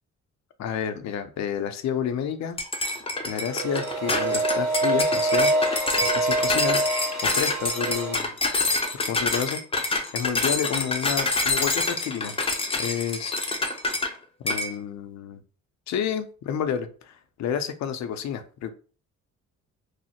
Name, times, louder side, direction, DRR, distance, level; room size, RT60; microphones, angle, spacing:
voice 1, 0.6-2.6 3.2-5.5 6.0-6.8 7.2-8.3 8.9-9.6 10.1-12.4 12.8-13.3 14.4-15.4 15.9-17.1 17.4-18.7, left 8 dB, 65° left, 9 dB, 0.5 m, -30 dB
sound 1, 2.6-14.1 14.5-14.7, left 2 dB, 20° left, 0.5 m, -26 dB
sound 2, 3.4-8.1, right 2 dB, 55° right, 0.8 m, -26 dB
3.0 x 2.1 x 2.8 m, 0.38 s
cardioid pair, 90°, 30 cm